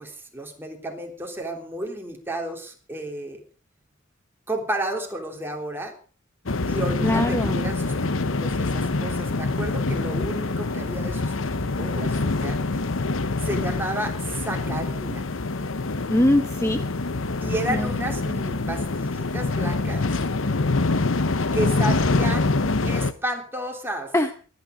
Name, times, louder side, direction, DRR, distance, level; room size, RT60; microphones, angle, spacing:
voice 1, 0.0-3.4 4.5-5.9 6.7-7.9 8.2-11.3 11.6-12.6 13.4-15.2 17.4-20.0 21.5-22.5 22.8-24.1, right 1 dB, 10° right, 2 dB, 3.4 m, -32 dB
sound 1, 6.5-23.1, left 3 dB, 90° left, 1.0 m, -25 dB
voice 2, 7.0-7.6 16.1-16.8 17.7-17.9 24.1-24.3, left 1 dB, 15° left, 8 dB, 0.8 m, -21 dB
23.0 x 9.6 x 5.1 m, 0.40 s
head